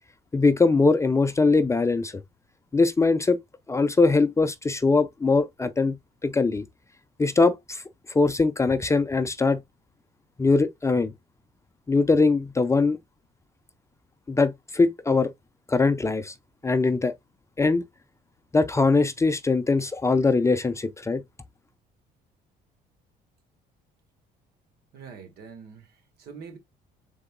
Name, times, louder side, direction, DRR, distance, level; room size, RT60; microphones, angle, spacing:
voice 1, 0.3-2.2 2.7-3.4 3.7-6.0 6.2-6.6 7.2-7.8 8.1-9.6 10.4-11.1 11.9-13.0 14.3-15.3 15.7-16.3 16.6-17.1 17.6-17.8 18.5-21.2, left 3 dB, 15° left, 0.4 m, -21 dB
voice 2, 24.9-26.6, right 6 dB, 70° right, 1.6 m, -44 dB
3.9 x 3.5 x 3.6 m
cardioid pair, 110°, 17 cm